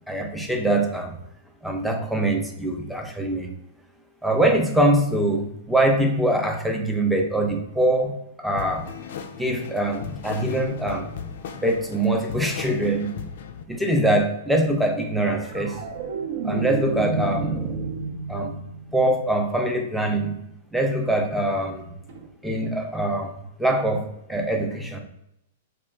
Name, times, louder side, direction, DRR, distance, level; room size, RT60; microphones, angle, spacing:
voice 1, 0.1-1.2 1.6-3.5 4.2-8.9 9.4-11.2 11.6-13.1 13.7-15.8 16.4-17.8 18.3-18.6 18.9-20.3 20.7-21.9 22.4-25.0, right 1 dB, ahead, 2 dB, 0.5 m, -23 dB
sound 1, 8.6-13.6, left 7 dB, 65° left, 0.3 m, -37 dB
sound 2, 15.2-19.7 22.1-22.3, right 4 dB, 60° right, 0.6 m, -30 dB
2.3 x 2.1 x 3.7 m, 0.80 s
hypercardioid pair, 110°, 0 cm